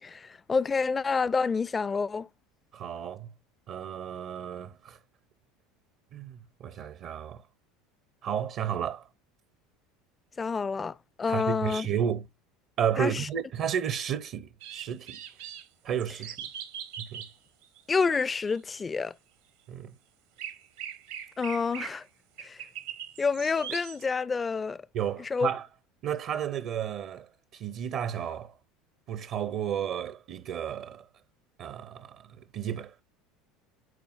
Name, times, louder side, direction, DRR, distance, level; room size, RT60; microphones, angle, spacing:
voice 1, 0.0-2.3 10.4-11.9 13.0-13.3 17.9-19.1 21.4-22.0 22.4-22.6 23.2-24.8 25.2-25.5, left 5 dB, 25° left, 0.4 m, -28 dB
voice 2, 2.7-3.3 3.7-5.0 6.1-7.4 8.2-9.1 11.3-12.3 12.8-15.2 15.8-16.5 17.0-17.2 19.7-20.0 24.9-25.7 26.0-27.3 27.5-28.5 29.1-31.1 31.6-32.9, right 9 dB, 50° right, 0.7 m, -32 dB
sound 1, 14.6-15.6 16.0-17.3 17.6-18.0 18.5-18.6 20.4-22.0 22.4-24.0, right 9 dB, 70° right, 1.1 m, -41 dB
11.0 x 4.3 x 2.5 m
hypercardioid pair, 75°, 0 cm